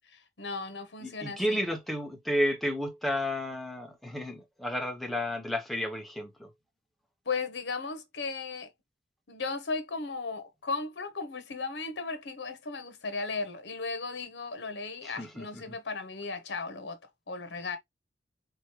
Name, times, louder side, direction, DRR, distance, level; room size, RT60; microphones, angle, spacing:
voice 1, 0.4-1.6 7.3-8.7 9.3-17.0 17.3-17.8, left 4 dB, 80° left, 0.9 m, -36 dB
voice 2, 1.0-6.5 15.0-15.8, equal, ahead, 0.8 m, -32 dB
3.6 x 3.1 x 2.9 m
head